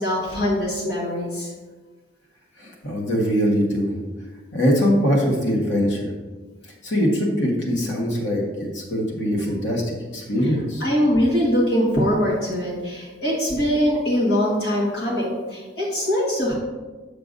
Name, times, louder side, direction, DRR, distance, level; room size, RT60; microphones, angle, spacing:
voice 1, 0.0-1.5 10.8-16.5, equal, 65° left, -5 dB, 1.6 m, -22 dB
voice 2, 2.6-3.9 4.5-6.1 6.8-10.8, equal, 90° left, -1 dB, 1.5 m, -22 dB
6.8 x 6.6 x 2.6 m, 1.3 s
head